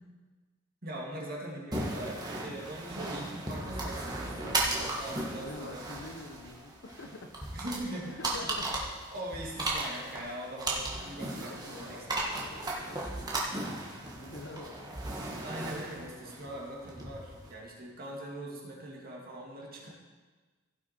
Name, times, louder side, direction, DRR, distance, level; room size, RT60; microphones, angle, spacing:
voice 1, 0.8-4.6 5.0-5.9 7.5-8.1 8.6-8.8 9.1-12.0 15.4-19.9, right 1 dB, 45° right, -2 dB, 2.2 m, -41 dB
sound 1, 1.7-17.5, right 2 dB, 20° right, 1.5 m, -36 dB
voice 2, 4.4-7.6 8.1-8.9 11.2-13.0 13.5-15.4 16.0-16.7 19.7-19.9, left 2 dB, 60° left, 5 dB, 0.9 m, -47 dB
15.5 x 6.2 x 4.4 m, 1.3 s
head